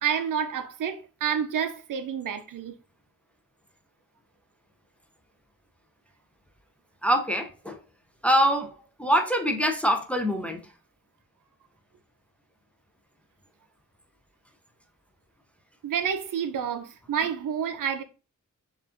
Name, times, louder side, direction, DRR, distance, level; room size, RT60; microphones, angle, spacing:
voice 1, 0.0-2.7 15.8-18.0, right 8 dB, 85° right, 0.5 m, -29 dB
voice 2, 7.0-7.8 8.2-8.7 9.0-10.6, equal, 5° left, 0.5 m, -24 dB
4.7 x 2.5 x 2.5 m
wide cardioid pair, 125°, 31 cm